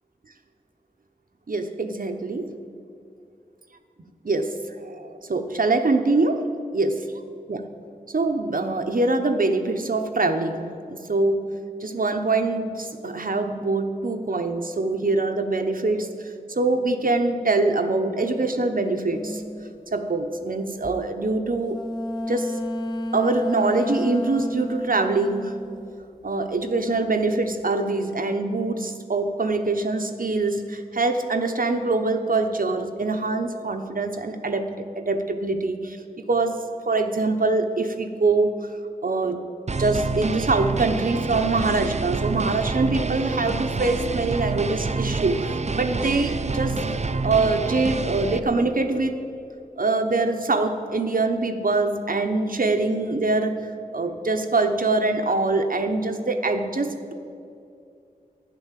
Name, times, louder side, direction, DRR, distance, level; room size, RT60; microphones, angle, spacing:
voice 1, 1.5-2.6 4.2-6.5 6.7-6.9 7.5-7.7 8.1-11.5 11.8-19.4 19.9-21.8 22.3-22.6 23.1-25.6 26.2-36.0 36.3-38.6 39.0-39.4 39.8-49.2 49.8-53.7 53.9-57.1, right 3 dB, 70° right, 5 dB, 1.0 m, -24 dB
sound 1, 19.1-19.7 21.7-26.4 26.6-27.4, left 1 dB, 30° left, 1.1 m, -31 dB
sound 2, 39.7-48.4, right 4 dB, 50° right, 0.6 m, -27 dB
11.5 x 9.8 x 7.5 m, 2.5 s
wide cardioid pair, 60°, 15 cm